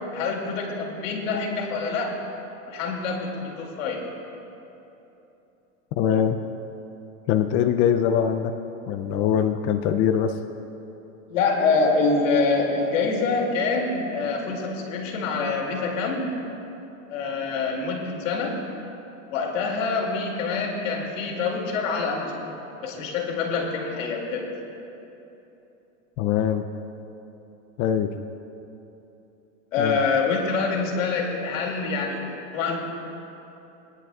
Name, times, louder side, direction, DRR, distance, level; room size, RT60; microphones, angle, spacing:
voice 1, 0.0-2.1 2.7-4.0 11.3-16.3 17.1-18.6 19.3-22.4 22.8-24.5 29.7-32.2 32.5-32.8, left 4 dB, 75° left, 0 dB, 2.5 m, -25 dB
voice 2, 6.0-6.4 7.3-8.5 8.9-10.4 26.2-26.7 27.8-28.1 29.8-30.0, left 9 dB, 30° left, 7 dB, 0.4 m, -22 dB
21.0 x 10.5 x 2.3 m, 3.0 s
supercardioid pair, 135°, 39 cm